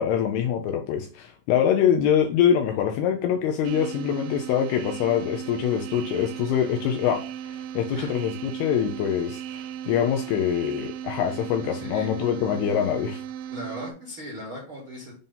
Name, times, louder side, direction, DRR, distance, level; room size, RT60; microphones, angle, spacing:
voice 1, 0.0-13.2, left 9 dB, 80° left, 4 dB, 2.3 m, -24 dB
sound 1, 3.6-13.9, right 9 dB, 90° right, 2.9 m, -36 dB
voice 2, 11.8-12.1 13.5-15.1, equal, 65° right, -4 dB, 1.3 m, -38 dB
7.3 x 2.7 x 5.3 m, 0.38 s
omnidirectional pair, 5.1 m